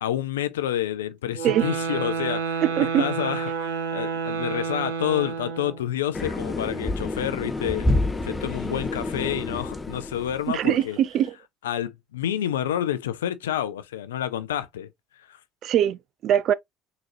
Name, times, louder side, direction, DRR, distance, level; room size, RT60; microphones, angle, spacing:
voice 1, 0.0-7.9 8.2-11.0 11.6-14.9 15.2-15.4, left 11 dB, 80° left, 0.4 m, -29 dB
sound 1, 1.3-5.9, right 6 dB, 80° right, 0.7 m, -29 dB
voice 2, 2.6-3.0 10.5-11.3 15.6-16.5, right 11 dB, 55° right, 0.3 m, -22 dB
sound 2, 6.1-10.8, left 2 dB, 20° left, 0.6 m, -28 dB
3.8 x 2.9 x 2.5 m
hypercardioid pair, 60°, 0 cm